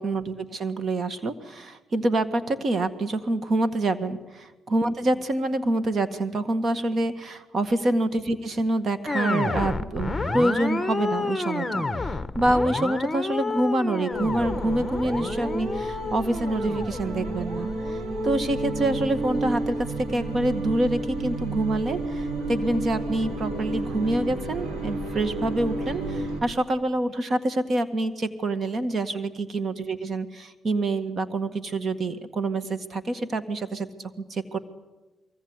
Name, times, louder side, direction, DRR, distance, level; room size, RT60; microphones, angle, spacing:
voice 1, 0.0-4.2 4.7-33.9 34.3-34.6, right 2 dB, 45° right, 11 dB, 1.8 m, -26 dB
sound 1, 9.1-18.4, left 3 dB, 15° left, 1.5 m, -30 dB
sound 2, 14.1-26.4, right 2 dB, 70° right, 6.1 m, -31 dB
23.5 x 20.5 x 9.8 m, 1.1 s
cardioid pair, 90°, 0 cm